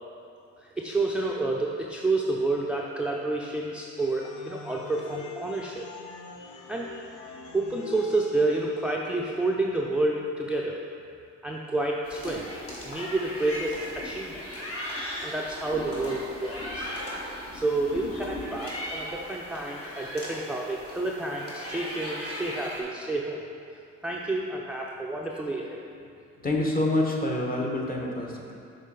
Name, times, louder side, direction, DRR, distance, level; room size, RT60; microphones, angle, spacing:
voice 1, 0.6-5.9 6.4-6.9 7.5-10.8 11.4-12.5 12.9-14.4 15.2-16.9 17.3-23.4 24.0-25.8, right 2 dB, 5° right, -2 dB, 0.4 m, -29 dB
sound 1, 4.0-9.0, left 5 dB, 85° left, 0.6 m, -44 dB
sound 2, 12.0-22.8, left 1 dB, 50° left, 1.5 m, -37 dB
voice 2, 26.4-28.5, left 1 dB, 30° left, -2 dB, 1.1 m, -27 dB
6.5 x 3.7 x 4.7 m, 2.4 s
cardioid pair, 90°, 30 cm